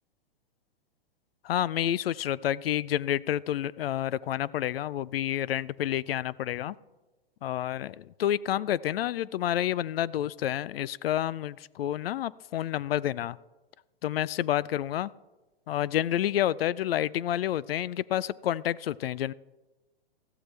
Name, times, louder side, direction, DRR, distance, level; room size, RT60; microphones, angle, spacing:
voice 1, 1.4-6.7 7.4-13.4 14.0-15.1 15.7-19.3, left 12 dB, 75° left, 22 dB, 0.4 m, -29 dB
14.5 x 12.5 x 3.3 m, 1.1 s
hypercardioid pair, 125°, 30 cm